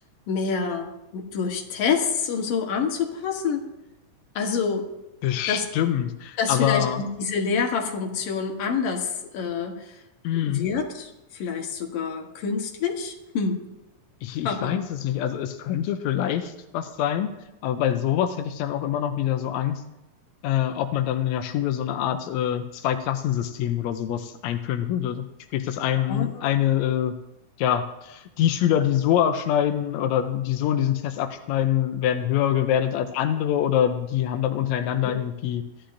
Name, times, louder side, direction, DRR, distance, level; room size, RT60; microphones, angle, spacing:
voice 1, 0.3-3.6 4.4-4.9 5.5-5.6 6.4-10.0 10.3-13.6 14.4-14.8 26.0-26.5 35.0-35.1, left 5 dB, 60° left, 2 dB, 1.8 m, -27 dB
voice 2, 5.2-7.1 10.2-10.7 14.2-17.3 17.6-19.8 20.4-25.2 25.5-27.1 27.6-35.6, left 10 dB, 90° left, 8 dB, 1.5 m, -25 dB
16.0 x 11.5 x 2.6 m, 0.92 s
omnidirectional pair, 3.9 m